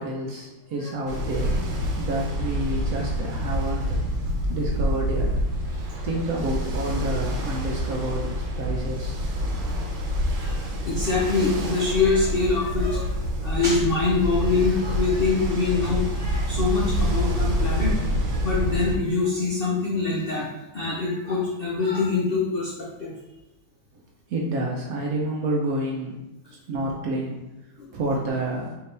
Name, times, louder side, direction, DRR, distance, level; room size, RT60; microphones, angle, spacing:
voice 1, 0.0-1.5 2.0-3.9 4.5-5.3 6.0-8.3 8.6-9.3 24.3-26.1 26.7-27.4 27.9-28.7, right 1 dB, 70° right, -2 dB, 0.9 m, -28 dB
Ocean, 1.1-19.0, equal, 90° right, 1.5 m, -27 dB
voice 2, 10.3-13.1 13.4-20.5 20.7-23.1 27.8-27.9, left 4 dB, 80° left, -5 dB, 0.5 m, -24 dB
4.7 x 2.9 x 3.2 m, 0.96 s
omnidirectional pair, 2.0 m